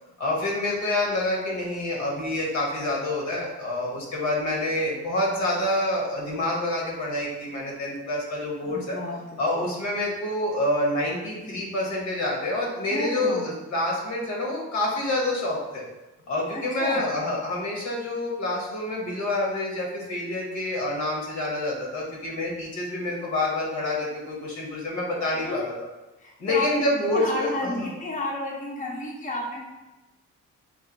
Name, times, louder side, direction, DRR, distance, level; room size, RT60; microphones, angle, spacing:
voice 1, 0.2-9.0 9.4-15.8 16.3-25.7 26.4-27.9, left 1 dB, 70° left, -2 dB, 1.3 m, -27 dB
voice 2, 8.6-9.2 9.6-9.7 12.9-13.5 16.5-17.1 25.4-25.7 26.2-26.9 27.1-29.6, left 1 dB, 25° left, -3 dB, 0.8 m, -31 dB
3.3 x 2.6 x 3.9 m, 1.1 s
cardioid pair, 90°, 30 cm